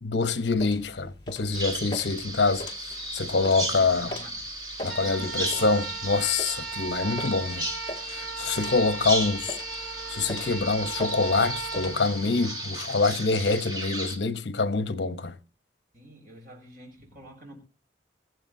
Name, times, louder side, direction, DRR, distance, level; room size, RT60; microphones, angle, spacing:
voice 1, 0.0-4.1 4.8-7.7 8.1-9.6 10.1-15.4, left 3 dB, 75° left, 0.9 m, -26 dB
sound 1, 0.5-12.0, equal, 25° left, 2.0 m, -43 dB
Bird vocalization bird call bird song, 1.5-14.2, right 1 dB, 25° right, 2.2 m, -35 dB
voice 2, 3.4-4.4 4.8-5.8 15.9-17.6, equal, 55° right, 7.2 m, -47 dB
sound 2, 4.8-13.0, right 5 dB, 85° right, 2.7 m, -38 dB
24.5 x 15.5 x 2.7 m
head